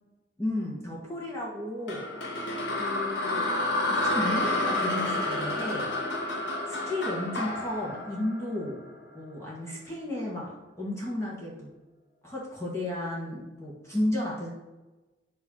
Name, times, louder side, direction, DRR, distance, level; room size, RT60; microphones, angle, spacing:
voice 1, 0.4-2.1 2.7-3.5 3.9-5.9 6.7-8.8 9.1-11.7 12.2-14.5, left 1 dB, 15° left, -5 dB, 1.5 m, -33 dB
sound 1, 1.9-9.0, left 1 dB, 70° left, 1.2 m, -30 dB
8.5 x 3.2 x 6.1 m, 1.1 s
head